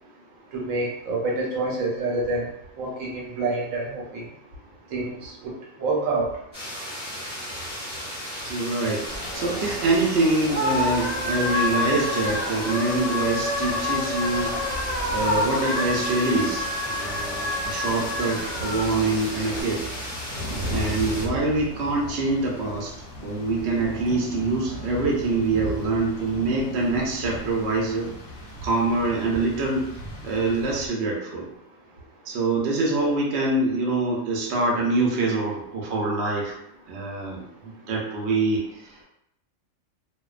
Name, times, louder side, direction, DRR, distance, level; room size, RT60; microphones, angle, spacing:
voice 1, 0.5-2.5 2.8-4.2 4.9-5.5 5.8-6.3, right 2 dB, 90° right, -2 dB, 1.1 m, -27 dB
sound 1, 6.5-21.2, equal, 10° right, 1.1 m, -35 dB
voice 2, 8.5-14.5 15.1-19.8 20.7-22.9 23.2-28.1 28.6-29.9 30.2-31.5 32.2-36.5 36.9-39.0, right 3 dB, 65° right, -2 dB, 0.8 m, -25 dB
sound 2, 9.1-19.6, left 2 dB, 40° left, 0.7 m, -28 dB
Rain, 13.2-30.9, left 1 dB, 85° left, 1.0 m, -38 dB
2.5 x 2.1 x 2.3 m, 0.77 s
omnidirectional pair, 1.3 m